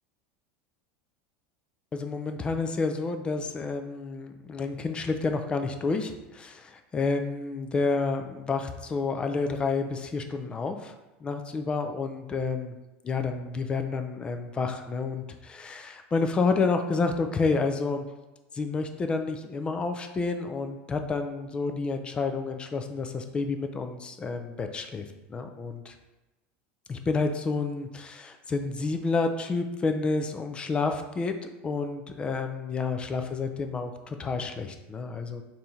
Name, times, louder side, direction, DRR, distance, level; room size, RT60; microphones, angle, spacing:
voice 1, 1.9-10.9 11.2-12.7 13.0-18.1 18.5-26.0 26.9-35.4, left 4 dB, 20° left, 6 dB, 0.3 m, -29 dB
3.5 x 2.7 x 4.3 m, 1.0 s
supercardioid pair, 145°, 6 cm